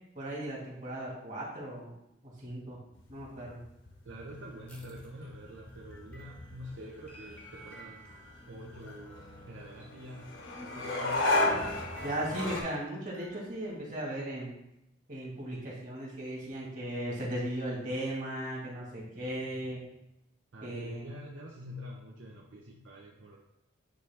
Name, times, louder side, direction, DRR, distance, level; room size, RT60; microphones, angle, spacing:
voice 1, 0.2-2.0 2.2-2.8 3.1-3.6 12.0-14.5 15.1-19.8 20.6-21.1, right 1 dB, 40° right, -4 dB, 2.0 m, -37 dB
sound 1, 3.0-12.6, left 2 dB, 75° left, 1.1 m, -35 dB
voice 2, 4.0-8.1 8.5-11.5 20.5-23.4, equal, 70° right, -2 dB, 0.7 m, -46 dB
sound 2, 4.7-10.2 10.6-13.8, right 2 dB, 5° left, 0.9 m, -54 dB
9.4 x 3.2 x 3.5 m, 0.86 s
head